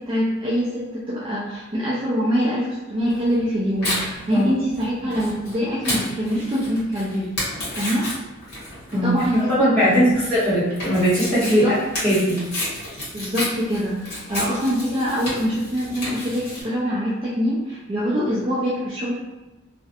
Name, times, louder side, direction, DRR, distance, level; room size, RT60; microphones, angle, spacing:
voice 1, 0.0-7.3 7.8-8.1 8.9-10.2 11.4-11.8 13.1-19.1, equal, 25° right, -8 dB, 0.3 m, -24 dB
Tearing, 3.1-16.6, left 1 dB, 45° left, 1.0 m, -32 dB
voice 2, 9.4-12.4, equal, 5° left, -13 dB, 1.1 m, -20 dB
2.4 x 2.0 x 2.7 m, 1.1 s
head